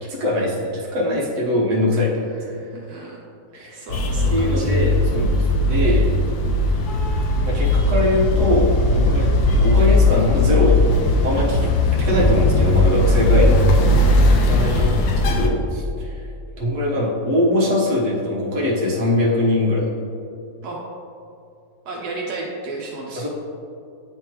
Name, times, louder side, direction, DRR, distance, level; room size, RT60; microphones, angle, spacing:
voice 1, 0.0-2.3 3.5-3.9 4.3-6.1 7.4-10.9 11.2-11.7 12.0-14.1 14.5-14.9 15.3-16.3 16.6-19.9 23.1-23.3, left 1 dB, 55° right, -4 dB, 1.4 m, -22 dB
voice 2, 2.4-3.2 3.7-4.9 14.6-15.0 20.6-20.8 21.8-23.3, right 3 dB, 80° right, -2 dB, 1.3 m, -33 dB
sound 1, 3.9-15.5, left 1 dB, 80° left, 1.2 m, -18 dB
9.3 x 3.5 x 3.0 m, 2.5 s
omnidirectional pair, 1.7 m